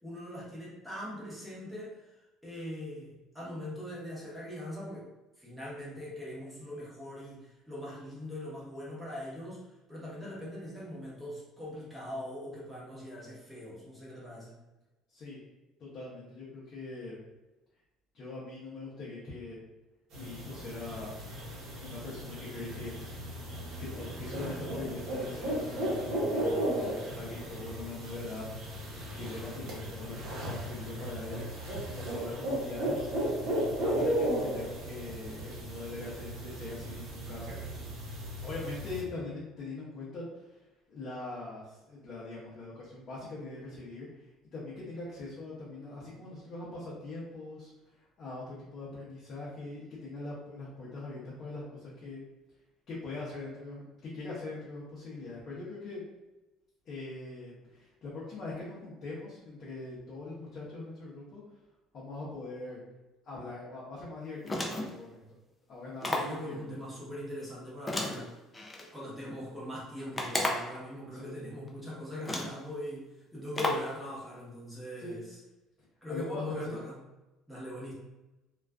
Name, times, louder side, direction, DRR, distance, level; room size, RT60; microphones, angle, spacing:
voice 1, 0.0-2.0 2.4-5.1 5.4-9.6 9.9-14.5 66.0-68.3 68.8-75.4 76.0-76.9 77.5-77.9, left 1 dB, ahead, -7 dB, 0.9 m, -41 dB
voice 2, 15.1-15.4 15.8-17.2 18.1-19.6 20.1-21.1 21.5-22.9 23.2-23.5 23.8-33.1 33.8-37.6 38.4-44.3 44.5-52.2 52.9-56.0 56.8-61.4 61.9-62.8 63.2-65.2 65.7-66.7 71.1-71.3 75.0-75.2 76.1-76.8, left 2 dB, 45° left, -7 dB, 0.7 m, -42 dB
sound 1, 20.1-39.0, right 1 dB, 60° right, 0.8 m, -35 dB
sound 2, 64.4-65.0 66.0-66.4 67.9-68.9 70.1-70.8 71.7-71.8 72.2-72.6 73.5-73.9, left 1 dB, 15° left, 0.4 m, -33 dB
2.3 x 2.3 x 2.3 m, 1.0 s
cardioid pair, 130°, 0 cm